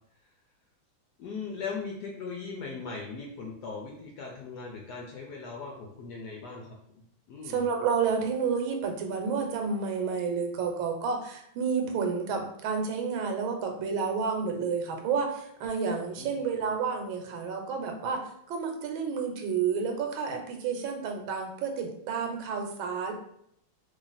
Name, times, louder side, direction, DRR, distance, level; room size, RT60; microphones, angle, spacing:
voice 1, 1.2-6.8 7.3-7.7 16.2-16.7, left 4 dB, 75° left, -1 dB, 1.0 m, -39 dB
voice 2, 7.5-18.2 18.5-23.1, right 5 dB, 80° right, 3 dB, 1.4 m, -30 dB
3.1 x 2.4 x 3.9 m, 0.73 s
omnidirectional pair, 2.2 m